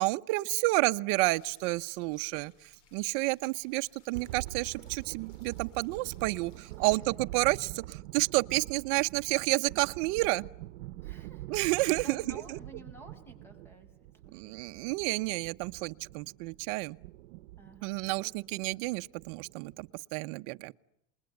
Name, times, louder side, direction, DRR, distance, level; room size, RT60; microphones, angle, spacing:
voice 1, 0.0-2.5 2.9-10.4 11.5-12.6 14.3-17.0 17.8-20.7, right 22 dB, 60° right, 1.0 m, -30 dB
sound 1, 1.1-7.5, left 4 dB, 80° left, 6.9 m, -65 dB
sound 2, 4.1-19.9, right 17 dB, 80° right, 1.0 m, -46 dB
voice 2, 6.5-7.1 11.0-13.9 14.2-14.9 17.6-18.6, right 1 dB, 5° left, 5.8 m, -53 dB
28.5 x 21.0 x 9.6 m
supercardioid pair, 140°, 36 cm